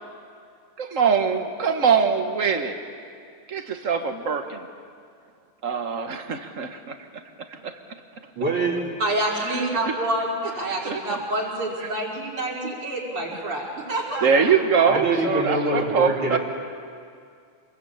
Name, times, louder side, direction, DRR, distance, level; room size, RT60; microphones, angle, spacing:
voice 1, 0.8-2.8 3.5-4.7 5.6-7.0 7.5-7.7 10.9-11.0 14.2-16.4, right 6 dB, 40° right, 6 dB, 1.7 m, -23 dB
voice 2, 8.4-8.9 14.9-16.4, right 2 dB, 70° right, -3 dB, 3.9 m, -24 dB
voice 3, 9.0-14.5, right 1 dB, 85° right, -4 dB, 6.0 m, -27 dB
27.5 x 21.5 x 8.9 m, 2.3 s
omnidirectional pair, 2.4 m